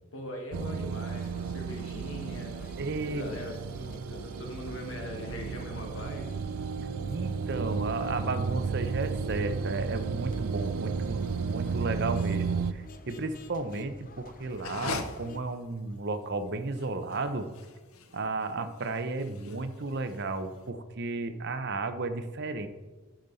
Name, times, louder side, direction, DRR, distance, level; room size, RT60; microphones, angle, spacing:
voice 1, 0.1-2.6 3.1-6.4, left 1 dB, 65° left, 2 dB, 1.7 m, -41 dB
sound 1, 0.5-12.7, right 5 dB, 90° right, 0.4 m, -33 dB
sound 2, 1.1-15.4, left 3 dB, 40° left, 0.5 m, -52 dB
voice 2, 2.8-3.3 7.1-17.5 18.1-22.7, right 3 dB, 50° right, 10 dB, 0.6 m, -33 dB
sound 3, 14.5-20.6, left 4 dB, 80° left, 0.8 m, -42 dB
12.0 x 5.2 x 4.0 m, 1.2 s
head